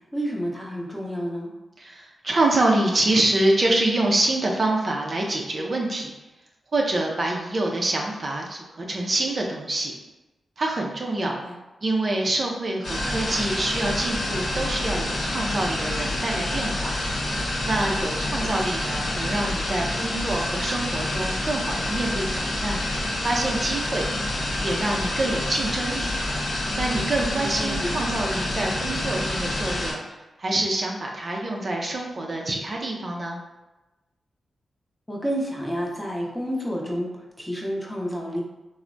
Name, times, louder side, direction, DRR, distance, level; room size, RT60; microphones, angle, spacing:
voice 1, 0.1-1.5 11.2-11.6 18.4-18.5 27.4-27.9 35.1-37.1 37.4-38.4, equal, 10° left, -3 dB, 0.7 m, -30 dB
voice 2, 1.8-6.1 6.7-9.9 10.6-11.3 11.8-16.9 17.6-22.8 23.2-24.1 24.6-26.1 26.7-33.4, right 2 dB, 50° right, 0 dB, 0.4 m, -26 dB
sound 1, 12.8-29.9, left 1 dB, 65° left, 0.8 m, -27 dB
3.2 x 2.0 x 2.5 m, 1.0 s
cardioid pair, 55°, 0 cm